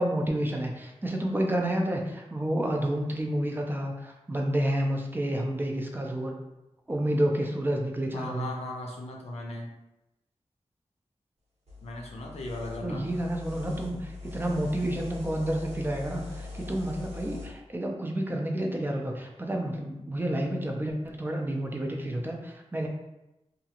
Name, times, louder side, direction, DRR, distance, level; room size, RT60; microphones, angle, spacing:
voice 1, 0.0-6.3 6.9-8.5 12.8-22.9, right 1 dB, 20° right, 1 dB, 0.4 m, -30 dB
voice 2, 8.1-9.7 11.8-13.0, left 2 dB, 70° left, 0 dB, 0.5 m, -37 dB
sound 1, 11.7-17.5, left 3 dB, 90° right, 1.1 m, -41 dB
2.9 x 2.4 x 2.8 m, 0.94 s
wide cardioid pair, 120°, 11 cm